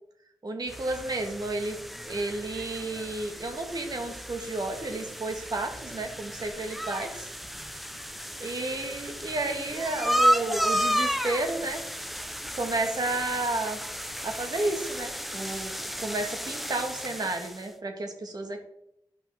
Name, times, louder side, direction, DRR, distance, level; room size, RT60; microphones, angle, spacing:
voice 1, 0.4-1.8 2.1-7.3 8.4-11.8 12.5-13.8 14.2-15.7 16.0-18.6, right 2 dB, 55° right, 4 dB, 1.6 m, -32 dB
sound 1, 0.7-17.7, equal, ahead, 0.7 m, -33 dB
11.5 x 5.4 x 3.5 m, 0.78 s
wide cardioid pair, 75°, 8 cm